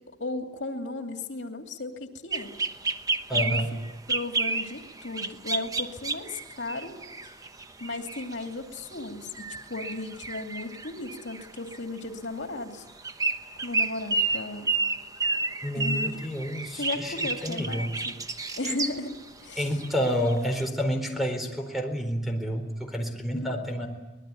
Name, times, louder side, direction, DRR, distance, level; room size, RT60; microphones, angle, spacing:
voice 1, 0.0-2.6 3.3-3.6 4.1-6.9 7.2-7.4 7.8-12.9 13.6-14.7 15.7-16.2 16.8-18.1 18.6-19.1 19.4-19.7 23.3-23.5, left 2 dB, 80° left, 4 dB, 2.7 m, -35 dB
sound 1, 2.3-8.4 8.9-9.1 9.3-12.0 12.9-19.2 19.5-20.6, right 3 dB, 20° right, 1.0 m, -31 dB
voice 2, 3.3-3.7 15.6-17.9 19.6-23.9, equal, ahead, 4 dB, 4.2 m, -29 dB
24.5 x 20.5 x 9.9 m, 1.1 s
head